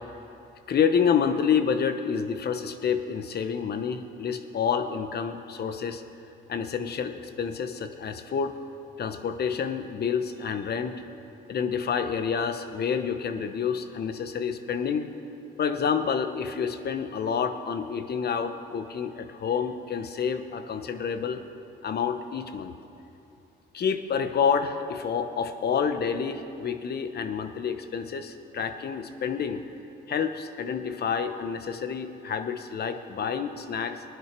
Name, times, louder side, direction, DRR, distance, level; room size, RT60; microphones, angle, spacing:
voice 1, 0.7-6.0 6.5-8.6 9.0-11.0 11.5-15.1 15.6-21.4 21.8-22.7 23.7-29.6 30.1-34.0, left 6 dB, 55° left, 9 dB, 1.1 m, -28 dB
19.5 x 10.0 x 6.0 m, 2.7 s
cardioid pair, 90°, 20 cm